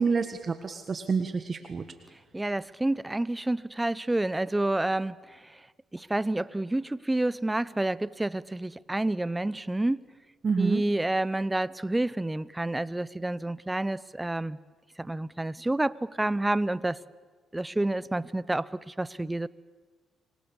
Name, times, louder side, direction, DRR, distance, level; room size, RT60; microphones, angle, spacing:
voice 1, 0.0-1.8 10.4-10.8, right 5 dB, 40° right, 1.5 m, -28 dB
voice 2, 2.3-5.6 5.9-10.0 10.6-14.6 15.0-17.0 17.5-19.5, right 2 dB, 10° right, 0.7 m, -29 dB
28.0 x 24.5 x 7.2 m
cardioid pair, 90°, 0 cm